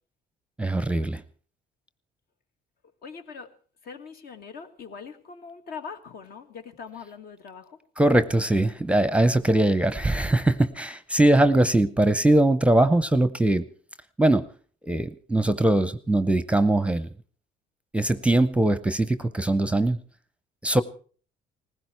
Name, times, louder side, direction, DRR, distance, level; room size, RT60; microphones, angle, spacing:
voice 1, 0.6-1.2 8.0-13.6 14.2-14.5 14.8-17.1 17.9-20.0 20.6-20.8, right 1 dB, 5° right, 0.7 m, -21 dB
voice 2, 3.0-3.5 3.8-7.8, left 6 dB, 60° left, 2.2 m, -42 dB
19.5 x 16.0 x 4.6 m
cardioid pair, 110°, 17 cm